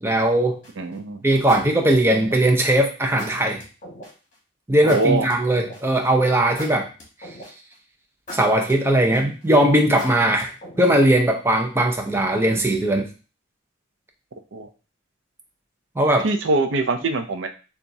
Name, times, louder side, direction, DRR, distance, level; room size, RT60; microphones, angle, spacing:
voice 1, 0.0-0.6 1.2-3.6 4.7-6.9 7.2-7.3 8.3-13.1 16.0-16.3, right 1 dB, 10° right, 2 dB, 0.5 m, -19 dB
sound 1, 0.6-0.9 1.5-2.6 3.2-4.1 4.9-6.0 6.6-7.7 8.3-9.4 10.0-11.1, left 1 dB, 40° left, 1.3 m, -39 dB
voice 2, 0.8-1.2 4.8-5.2 14.5-14.7 16.2-17.5, right 3 dB, 65° right, 7 dB, 0.5 m, -23 dB
6.8 x 2.4 x 2.6 m, 0.35 s
head